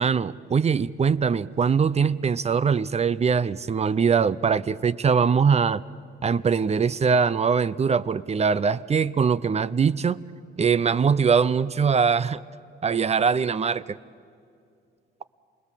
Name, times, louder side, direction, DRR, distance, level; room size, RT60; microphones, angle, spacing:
voice 1, 0.0-5.8 6.2-10.2 10.6-12.4 12.8-14.0, right 6 dB, 35° right, 16 dB, 0.6 m, -22 dB
28.5 x 19.5 x 7.5 m, 2.4 s
cardioid pair, 90°, 20 cm